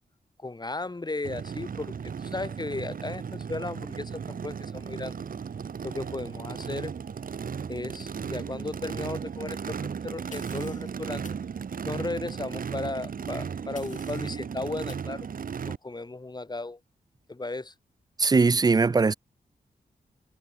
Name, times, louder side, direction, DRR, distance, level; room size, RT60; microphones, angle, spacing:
voice 1, 0.4-5.1 5.8-7.0 7.7-11.2 11.8-15.3 15.7-16.8 17.3-17.7, left 2 dB, 25° left, 3.4 m, -35 dB
Race car auto racing / Idling / Accelerating revving vroom, 1.2-15.8, right 6 dB, 60° right, 1.2 m, -35 dB
sound 1, 10.3-10.9 11.2-11.4 13.7-14.4 14.9-15.1, left 5 dB, 55° left, 2.9 m, -49 dB
voice 2, 18.2-19.1, right 4 dB, 25° right, 0.4 m, -20 dB
wide cardioid pair, 85°, 16 cm